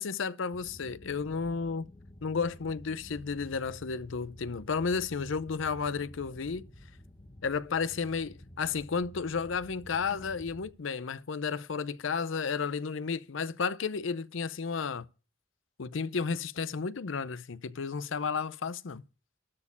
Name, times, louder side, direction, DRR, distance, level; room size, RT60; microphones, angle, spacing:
voice 1, 0.0-1.9 2.2-6.6 7.4-15.0 15.8-19.0, left 5 dB, 80° left, 0.6 m, -32 dB
sound 1, 0.5-10.7, left 1 dB, 25° left, 1.1 m, -51 dB
13.0 x 4.4 x 8.2 m
head